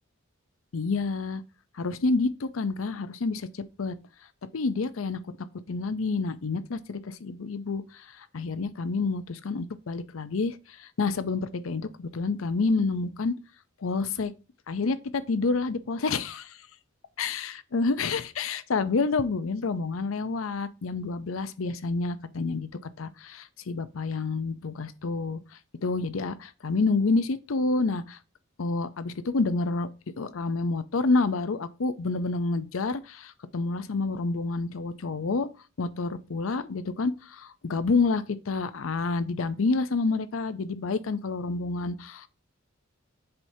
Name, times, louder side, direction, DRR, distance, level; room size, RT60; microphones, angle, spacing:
voice 1, 0.7-1.4 1.8-3.9 4.5-5.2 5.7-7.8 8.2-13.3 13.8-14.3 14.7-16.6 17.2-22.7 23.0-25.4 25.8-28.2 28.6-29.9 30.2-35.5 35.8-42.3, left 3 dB, 80° left, 0.6 m, -28 dB
7.7 x 5.7 x 2.7 m
head